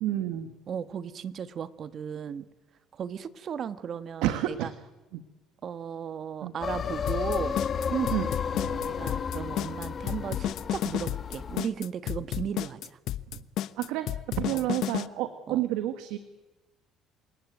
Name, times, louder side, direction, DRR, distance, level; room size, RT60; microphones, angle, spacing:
voice 1, 0.0-0.5 4.2-4.7 5.1-5.2 6.4-6.5 8.1-8.3 8.6-8.8 13.3-13.4 13.8-16.2, right 13 dB, 80° right, 9 dB, 1.5 m, -30 dB
voice 2, 0.7-2.4 2.9-4.7 5.6-7.6 7.9-8.2 8.8-13.0 14.5-14.7 15.5-15.6, right 8 dB, 50° right, 12 dB, 1.4 m, -35 dB
sound 1, 6.6-11.6, left 6 dB, 45° left, 1.9 m, -32 dB
sound 2, 7.1-15.1, left 12 dB, 70° left, 1.0 m, -32 dB
28.0 x 18.0 x 9.3 m, 1.2 s
supercardioid pair, 75°, 0 cm